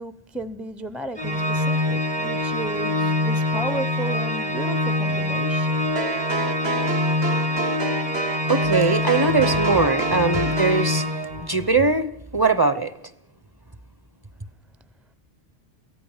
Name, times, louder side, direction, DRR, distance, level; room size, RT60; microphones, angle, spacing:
voice 1, 0.0-5.9, right 2 dB, ahead, 0.6 m, -34 dB
Organ, 1.2-11.8, left 1 dB, 45° right, 1.7 m, -24 dB
sound 1, 6.0-10.9, right 3 dB, 80° right, 1.7 m, -29 dB
voice 2, 8.5-11.1 11.4-12.9, right 3 dB, 25° right, 0.9 m, -21 dB
23.5 x 16.5 x 7.4 m
omnidirectional pair, 1.0 m